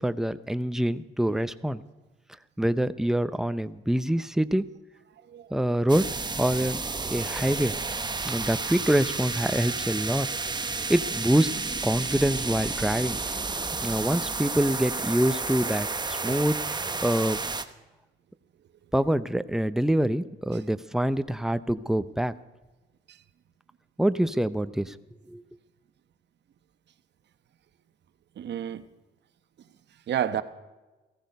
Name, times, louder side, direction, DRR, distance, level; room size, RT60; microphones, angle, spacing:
voice 1, 0.0-1.8 2.6-4.7 5.5-6.8 7.1-7.7 8.3-10.3 10.9-13.2 13.8-17.4 18.9-22.3 24.0-25.0 25.3-25.4, right 1 dB, ahead, 0.7 m, -25 dB
sound 1, 5.9-17.6, right 4 dB, 20° right, 1.0 m, -31 dB
voice 2, 28.4-28.8 30.1-30.4, right 10 dB, 60° right, 1.1 m, -30 dB
16.0 x 14.5 x 5.3 m
cardioid pair, 90°, 20 cm